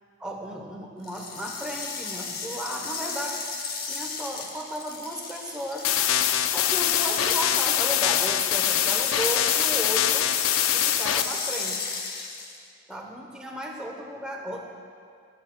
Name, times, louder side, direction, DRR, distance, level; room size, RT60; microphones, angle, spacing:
voice 1, 0.2-3.4 3.9-5.9 6.5-10.3 10.7-11.9 12.9-14.6, equal, 5° right, -1 dB, 0.8 m, -34 dB
sound 1, 1.0-12.7, left 5 dB, 45° left, 0.8 m, -34 dB
sound 2, 5.8-11.2, left 11 dB, 85° left, 0.4 m, -23 dB
16.0 x 8.5 x 2.2 m, 2.3 s
head